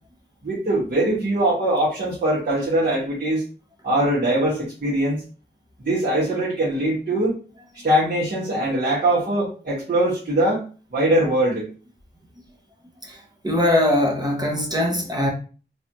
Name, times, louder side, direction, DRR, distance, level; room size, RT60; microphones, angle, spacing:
voice 1, 0.4-3.4 3.8-5.2 5.8-7.3 7.8-11.7, right 1 dB, 55° right, 1.6 m, -22 dB
voice 2, 13.4-15.3, left 1 dB, 20° right, 0.9 m, -21 dB
3.2 x 2.6 x 3.0 m
wide cardioid pair, 75°, 19 cm